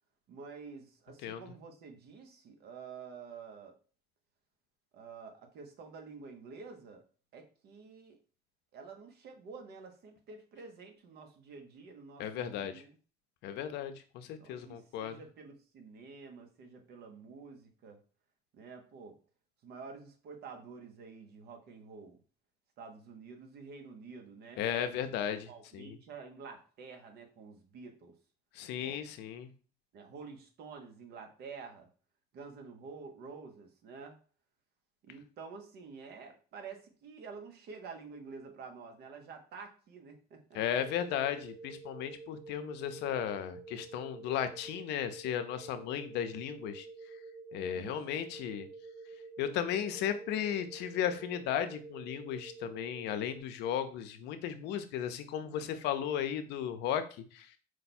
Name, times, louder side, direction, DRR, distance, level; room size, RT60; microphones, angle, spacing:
voice 1, 0.3-3.8 4.9-7.0 7.3-8.2 8.7-13.0 14.4-18.0 18.5-19.2 19.6-22.2 22.8-24.6 25.1-25.2 25.5-28.2 28.8-29.0 29.9-31.9 32.3-34.2 35.0-40.6 47.7-48.2, right 5 dB, 70° right, 5 dB, 1.0 m, -49 dB
voice 2, 12.2-12.8 13.4-15.2 24.6-26.0 28.5-29.5 40.5-47.2 47.5-48.7 49.4-57.5, left 9 dB, 85° left, 10 dB, 0.6 m, -35 dB
sound 1, 40.8-53.4, right 4 dB, 20° right, 0.7 m, -49 dB
4.6 x 2.3 x 4.2 m, 0.39 s
cardioid pair, 110°, 17 cm